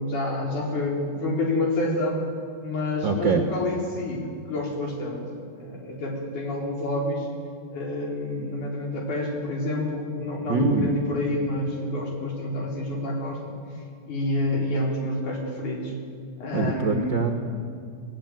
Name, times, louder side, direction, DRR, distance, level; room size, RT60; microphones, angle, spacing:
voice 1, 0.0-2.2 2.6-7.3 7.7-13.5 14.1-15.9 16.4-17.2, left 1 dB, 65° left, -1 dB, 5.5 m, -28 dB
voice 2, 3.0-3.4 10.5-10.9 16.5-17.3, right 4 dB, 50° right, 4 dB, 1.4 m, -23 dB
24.0 x 19.0 x 9.3 m, 2.2 s
omnidirectional pair, 3.8 m